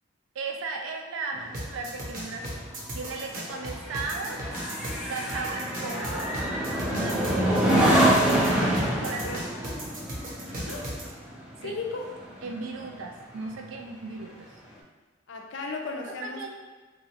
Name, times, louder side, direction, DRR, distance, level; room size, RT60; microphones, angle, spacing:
voice 1, 0.3-4.4 5.1-6.4 6.9-8.1 8.7-9.5 11.6-11.8 12.4-14.5 16.1-16.5, right 3 dB, 80° right, 3 dB, 0.4 m, -36 dB
sound 1, 1.3-13.1 13.5-13.8, right 1 dB, 5° right, 0.3 m, -27 dB
sound 2, 1.5-11.0, right 1 dB, 45° right, 0.6 m, -36 dB
voice 2, 11.6-12.1 15.3-16.5, left 3 dB, 65° left, 1 dB, 0.4 m, -35 dB
2.8 x 2.3 x 2.8 m, 1.3 s
head